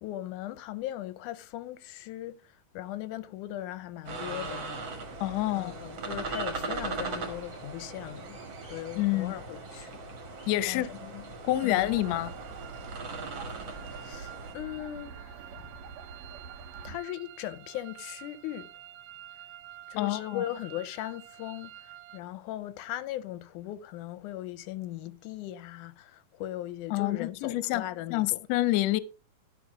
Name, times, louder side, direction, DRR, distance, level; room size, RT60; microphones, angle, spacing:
voice 1, 0.0-4.6 5.5-10.0 10.7-11.3 11.6-11.9 13.9-15.7 16.8-18.7 19.9-28.5, left 13 dB, 90° left, 2.2 m, -39 dB
sound 1, 4.0-14.5, right 3 dB, 45° right, 2.2 m, -39 dB
voice 2, 5.2-5.7 9.0-9.3 10.5-10.9 11.4-12.3 20.0-20.4 26.9-27.8 28.1-29.0, left 16 dB, 75° left, 1.7 m, -27 dB
sound 2, 11.6-22.2, right 12 dB, 90° right, 1.3 m, -49 dB
sound 3, 11.9-17.0, right 5 dB, 70° right, 2.1 m, -46 dB
12.5 x 5.8 x 4.9 m
omnidirectional pair, 3.5 m